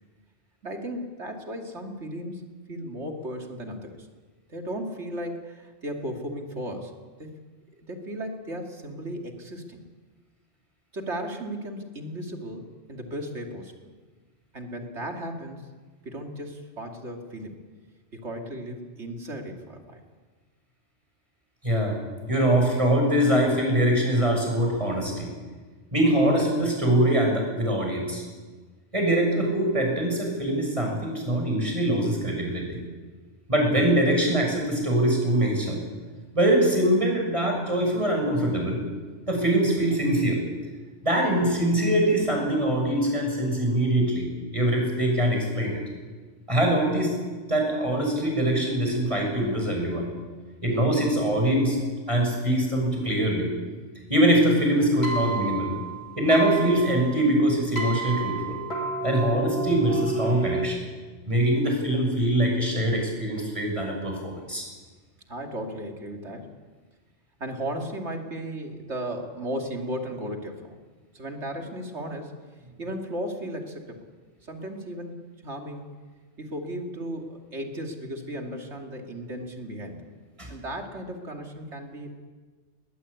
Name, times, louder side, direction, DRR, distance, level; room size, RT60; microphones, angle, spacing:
voice 1, 0.6-4.1 4.5-6.9 7.2-7.3 7.8-9.8 10.9-13.9 14.5-15.6 16.0-17.6 18.1-20.0 65.3-66.5 67.4-70.8 71.1-72.3 72.8-74.0 74.4-75.9 76.4-80.1 80.5-82.1, right 1 dB, 65° right, 2 dB, 3.0 m, -35 dB
voice 2, 21.6-22.0 22.3-25.3 25.9-28.2 28.9-32.8 33.5-35.8 36.3-38.8 39.3-40.4 41.0-44.3 44.5-45.8 46.5-47.2 47.4-50.0 50.6-51.8 52.1-53.5 54.1-55.7 56.2-58.6 59.0-60.8 61.3-64.6 80.4-80.5, right 1 dB, 25° right, 1 dB, 7.0 m, -23 dB
sound 1, 54.6-60.7, right 4 dB, 55° left, 3.3 m, -31 dB
21.0 x 20.0 x 8.5 m, 1.4 s
omnidirectional pair, 1.2 m